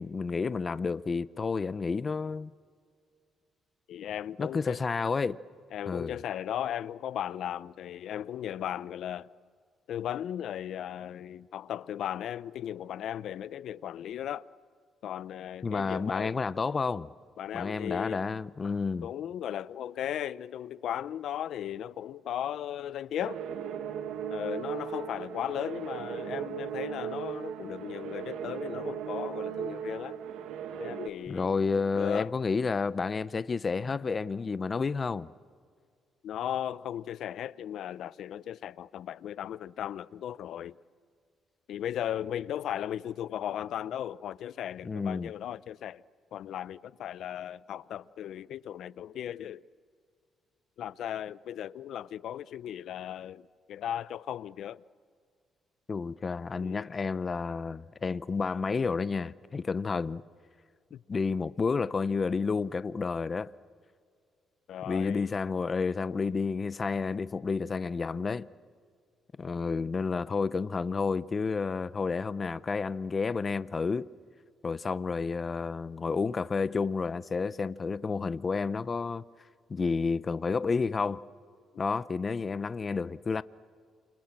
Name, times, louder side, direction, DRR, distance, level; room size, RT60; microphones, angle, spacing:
voice 1, 0.0-2.5 4.4-5.4 5.9-6.2 15.6-17.1 17.5-19.1 31.3-35.3 44.8-45.3 55.9-60.2 61.1-63.5 64.8-68.5 69.4-74.1 74.6-79.2 79.7-81.2 81.8-83.4, left 4 dB, 35° left, 0.7 m, -30 dB
voice 2, 3.9-4.8 5.7-9.3 9.9-14.4 15.0-16.3 17.4-18.2 19.0-23.4 24.3-30.2 30.8-32.3 36.2-40.8 41.7-46.0 46.3-49.6 50.8-54.8 56.6-56.9 60.9-61.0 64.7-65.3, left 10 dB, 75° left, 0.6 m, -36 dB
sound 1, 23.2-31.1, right 8 dB, 85° right, 1.8 m, -37 dB
29.0 x 27.0 x 7.5 m
cardioid pair, 90°, 0 cm